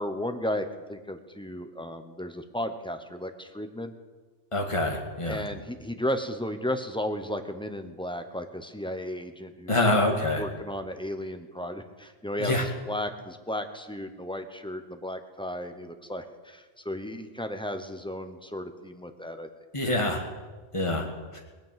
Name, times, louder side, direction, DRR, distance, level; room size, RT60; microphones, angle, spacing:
voice 1, 0.0-3.9 5.3-10.0 10.4-19.5, left 1 dB, 5° left, 7 dB, 0.8 m, -34 dB
voice 2, 4.5-5.4 9.7-10.4 12.4-12.7 19.7-20.2 20.7-21.1 21.3-21.4, left 1 dB, 25° left, 1 dB, 2.1 m, -25 dB
19.0 x 9.1 x 7.5 m, 1.4 s
omnidirectional pair, 1.3 m